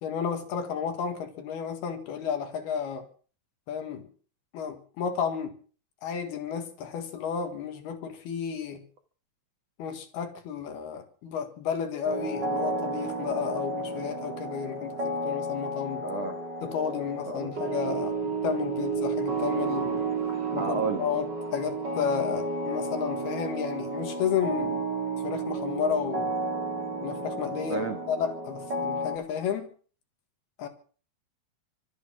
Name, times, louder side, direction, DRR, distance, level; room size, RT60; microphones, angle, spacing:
voice 1, 0.0-3.1 3.7-4.0 4.5-5.6 6.0-8.8 9.8-16.0 16.6-20.1 20.5-24.8 25.2-26.3 27.0-29.7 30.6-30.7, left 7 dB, 60° left, 7 dB, 3.2 m, -32 dB
sound 1, 12.0-29.2, right 2 dB, 30° right, 2.5 m, -32 dB
voice 2, 16.0-16.4 17.3-17.5 20.3-21.0 27.7-28.0, right 5 dB, 65° right, 6 dB, 1.6 m, -31 dB
25.0 x 9.4 x 6.1 m, 0.42 s
omnidirectional pair, 5.7 m